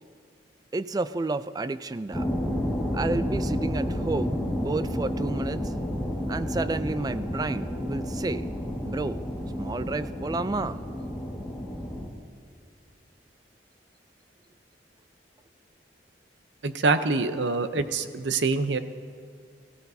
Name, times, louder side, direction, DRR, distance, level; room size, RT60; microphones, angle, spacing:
voice 1, 0.7-2.3 2.9-5.7 6.3-8.5 8.8-9.2 9.6-10.8, right 3 dB, 20° right, 14 dB, 0.3 m, -31 dB
sound 1, 2.1-12.1, equal, ahead, 1.8 m, -31 dB
voice 2, 16.6-18.8, right 3 dB, 80° right, 10 dB, 0.7 m, -25 dB
21.0 x 15.5 x 2.7 m, 2.2 s
head